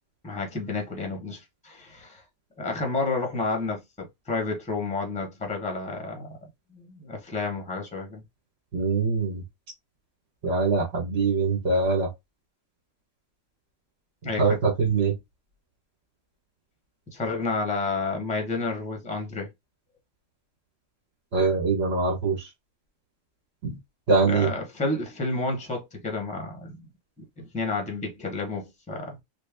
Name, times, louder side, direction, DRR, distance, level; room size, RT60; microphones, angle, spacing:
voice 1, 0.2-2.2 2.6-6.4 6.7-8.2 14.2-14.6 17.1-19.5 24.2-26.8 27.4-29.2, left 3 dB, 5° left, 0.8 m, -30 dB
voice 2, 8.7-9.4 10.4-12.1 14.4-15.1 21.3-22.5 23.6-23.7 24.1-24.5, right 4 dB, 60° right, 1.5 m, -23 dB
3.5 x 2.2 x 3.4 m
omnidirectional pair, 1.3 m